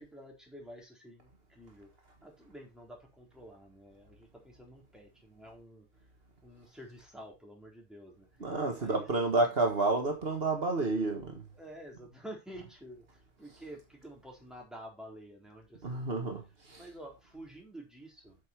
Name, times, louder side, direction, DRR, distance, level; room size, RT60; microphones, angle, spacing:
voice 1, 0.0-1.9 2.2-5.9 6.4-8.4 8.8-9.1 11.5-16.1 16.8-18.4, right 1 dB, ahead, 3.9 m, -50 dB
voice 2, 8.4-11.4 15.8-16.8, right 2 dB, 65° right, 1.8 m, -30 dB
8.4 x 6.7 x 4.5 m
omnidirectional pair, 1.1 m